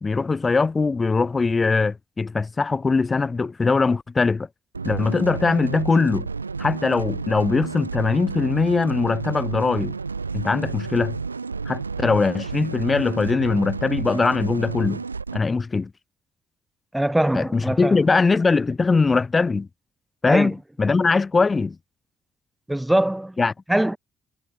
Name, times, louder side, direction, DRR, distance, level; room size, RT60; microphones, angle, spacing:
voice 1, 0.0-4.5 4.8-6.3 6.6-9.9 10.3-11.2 11.7-15.0 15.3-15.9 17.3-19.7 20.2-21.8 23.4-23.5, left 4 dB, 30° left, 0.8 m, -21 dB
sound 1, 4.7-15.4, right 4 dB, 85° right, 1.4 m, -31 dB
voice 2, 16.9-18.0 20.3-20.5 22.7-23.4 23.7-24.0, right 1 dB, 5° right, 1.4 m, -22 dB
figure-of-eight pair, 45°, 0 cm